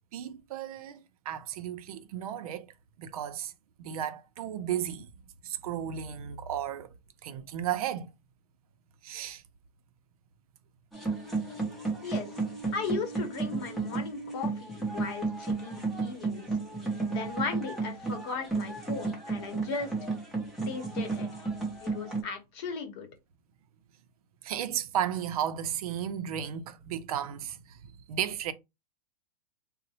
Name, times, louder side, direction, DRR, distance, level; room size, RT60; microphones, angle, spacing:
voice 1, 0.1-1.0 1.3-2.7 3.0-3.5 3.8-5.1 5.4-6.9 7.2-8.1 9.0-9.4 24.4-27.8 28.1-28.5, right 10 dB, 60° right, 0.5 m, -34 dB
sound 1, 10.9-22.2, right 3 dB, ahead, 0.5 m, -33 dB
voice 2, 12.7-16.6 17.1-19.9 20.7-21.5 21.8-23.1, left 5 dB, 40° left, 0.9 m, -37 dB
3.8 x 2.0 x 2.7 m
supercardioid pair, 160°, 21 cm